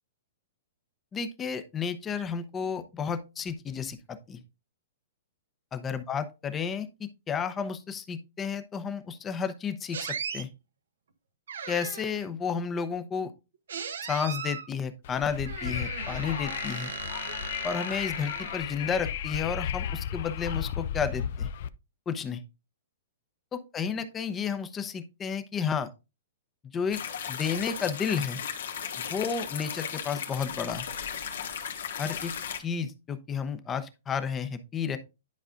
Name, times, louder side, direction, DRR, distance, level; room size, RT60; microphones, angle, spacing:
voice 1, 1.1-4.4 5.7-10.5 11.7-13.3 14.0-16.9 17.6-21.5 22.1-22.4 23.5-25.9 26.7-27.0 27.3-28.4 29.0-30.9 32.0-32.3 32.6-35.0, left 6 dB, 15° left, 0.7 m, -32 dB
sound 1, 9.9-10.4 11.5-12.2 13.7-14.7 15.4-18.9, right 7 dB, 85° right, 0.9 m, -38 dB
Wind, 15.0-21.7, left 9 dB, 55° left, 0.4 m, -34 dB
sound 2, 26.9-32.6, left 8 dB, 80° left, 1.5 m, -36 dB
10.5 x 4.9 x 2.5 m
hypercardioid pair, 150°, 0 cm